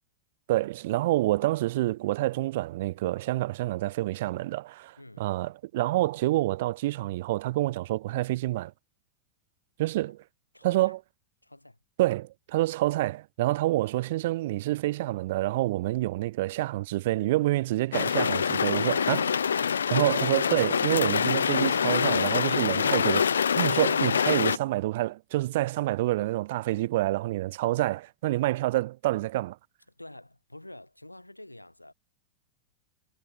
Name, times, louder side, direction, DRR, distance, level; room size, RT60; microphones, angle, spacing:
voice 1, 0.5-8.7 9.8-10.2 10.6-11.0 12.0-19.3 19.9-29.6, right 17 dB, 55° right, 1.7 m, -27 dB
voice 2, 5.0-5.3 10.5-11.0 11.4-11.8 19.9-20.2 30.0-31.9, left 1 dB, 85° left, 8.0 m, -48 dB
sound 1, 17.9-24.6, left 7 dB, 70° left, 0.4 m, -25 dB
figure-of-eight pair, 90°, 0 cm